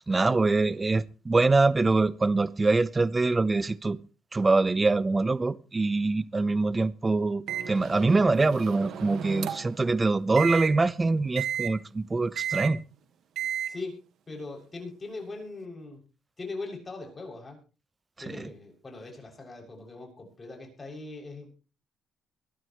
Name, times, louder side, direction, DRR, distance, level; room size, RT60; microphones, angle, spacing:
voice 1, 0.1-4.0 4.3-12.8, right 3 dB, 25° right, 0.8 m, -24 dB
Microwave oven, 7.5-9.8 10.4-10.7 11.4-11.7 12.4-12.7 13.4-13.7, right 10 dB, 75° right, 1.6 m, -33 dB
voice 2, 13.7-14.0 14.3-16.0 16.4-17.6 18.2-21.5, left 3 dB, 30° left, 7.0 m, -40 dB
22.5 x 12.0 x 3.2 m
cardioid pair, 90°, 0 cm